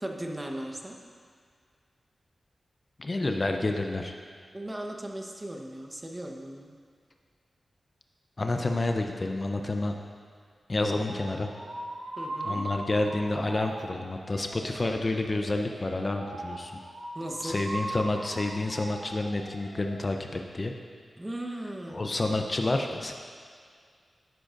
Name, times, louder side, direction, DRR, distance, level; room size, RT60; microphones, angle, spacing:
voice 1, 0.0-1.0 4.5-6.7 12.2-12.7 17.1-17.6 21.2-22.0, right 1 dB, 20° right, 2 dB, 1.1 m, -37 dB
voice 2, 3.0-4.1 8.4-10.0 10.7-11.5 12.4-16.7 17.4-20.7 21.9-23.1, left 2 dB, 45° left, 4 dB, 0.7 m, -29 dB
sound 1, 11.1-19.9, right 1 dB, 80° right, 2.0 m, -40 dB
12.5 x 7.7 x 2.6 m, 2.1 s
cardioid pair, 45°, 0 cm